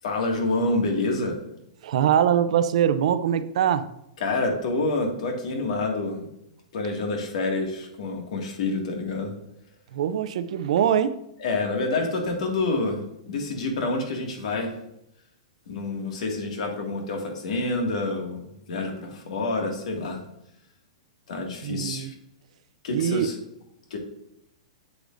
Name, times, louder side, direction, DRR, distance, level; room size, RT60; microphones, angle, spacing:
voice 1, 0.0-1.4 4.2-6.3 6.7-9.3 11.4-14.7 15.7-20.2 21.3-22.1 22.8-23.4 23.9-24.0, left 2 dB, 70° left, 2 dB, 2.0 m, -28 dB
voice 2, 1.8-3.9 9.9-11.2 21.6-22.1 22.9-23.3, right 9 dB, 65° right, 13 dB, 0.5 m, -23 dB
8.1 x 8.0 x 2.6 m, 0.80 s
hypercardioid pair, 155°, 4 cm